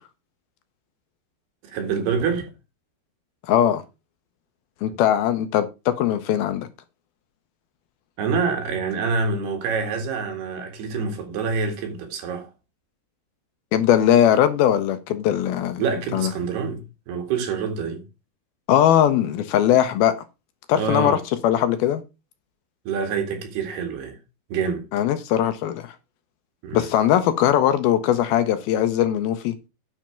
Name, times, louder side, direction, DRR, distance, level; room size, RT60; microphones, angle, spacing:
voice 1, 1.6-2.5 4.8-5.0 8.2-12.5 15.8-18.0 20.8-21.2 22.9-24.2 24.5-24.9 26.6-26.9, right 5 dB, 75° right, 4.0 m, -26 dB
voice 2, 3.5-3.8 4.8-6.7 13.7-15.8 16.1-16.3 18.7-20.2 20.7-21.2 21.4-22.0 24.9-25.9 26.7-29.5, left 10 dB, 75° left, 2.5 m, -20 dB
10.5 x 5.7 x 5.0 m
omnidirectional pair, 4.8 m